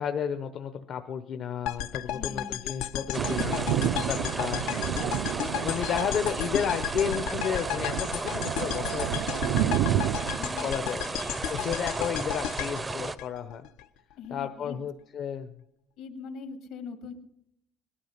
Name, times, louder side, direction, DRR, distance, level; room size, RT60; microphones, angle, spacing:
voice 1, 0.0-9.9 10.6-11.0 11.5-13.7 14.3-15.5, left 8 dB, 45° left, 7 dB, 0.7 m, -33 dB
sound 1, 1.7-13.8, left 11 dB, 90° left, 0.7 m, -34 dB
voice 2, 2.1-3.0 9.6-10.0 10.4-11.2 14.2-14.8 16.0-17.1, left 5 dB, 70° left, 5 dB, 2.1 m, -43 dB
sound 2, 3.1-13.2, right 3 dB, 15° right, 0.5 m, -34 dB
Thunder, 3.1-10.4, right 12 dB, 80° right, 0.5 m, -31 dB
19.5 x 12.5 x 5.7 m, 0.80 s
cardioid pair, 165°, 0 cm